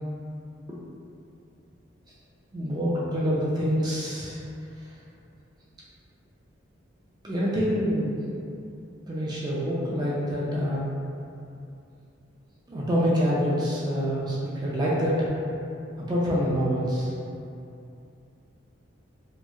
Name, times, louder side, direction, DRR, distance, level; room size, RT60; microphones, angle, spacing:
voice 1, 2.5-4.4 7.2-8.2 9.1-10.8 12.7-15.3 16.1-17.1, equal, 20° right, -7 dB, 0.3 m, -26 dB
2.8 x 2.3 x 2.3 m, 2.6 s
head